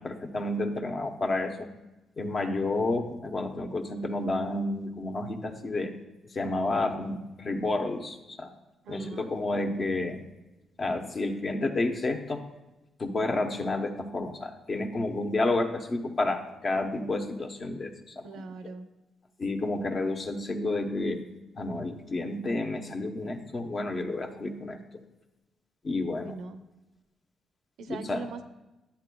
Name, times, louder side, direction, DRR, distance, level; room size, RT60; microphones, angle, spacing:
voice 1, 0.0-1.7 2.2-5.9 6.3-8.5 8.9-10.3 10.8-12.4 13.0-18.4 19.4-21.2 21.5-25.0 25.8-26.4 27.9-28.2, left 2 dB, 40° left, 5 dB, 0.9 m, -30 dB
voice 2, 8.8-9.3 18.2-18.9 26.2-26.6 27.8-28.4, right 4 dB, 75° right, 9 dB, 0.6 m, -41 dB
11.5 x 8.3 x 2.3 m, 1.0 s
cardioid pair, 90°, 0 cm